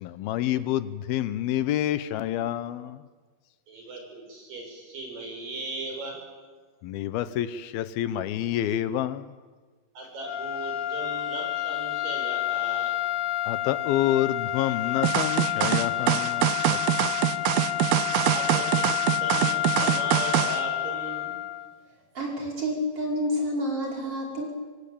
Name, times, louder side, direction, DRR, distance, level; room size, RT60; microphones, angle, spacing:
voice 1, 0.0-3.0 6.8-9.2 13.5-16.8, left 12 dB, 80° left, 14 dB, 2.8 m, -28 dB
voice 2, 3.7-6.2 10.0-12.9 18.3-18.9 19.2-21.4, right 2 dB, 60° right, 2 dB, 7.3 m, -37 dB
sound 1, 10.2-21.7, left 13 dB, 65° left, 2.3 m, -29 dB
sound 2, 15.0-20.6, right 13 dB, 85° right, 2.9 m, -24 dB
voice 3, 22.1-24.5, equal, 40° right, 0 dB, 6.2 m, -29 dB
25.0 x 24.0 x 8.6 m, 1.4 s
omnidirectional pair, 4.3 m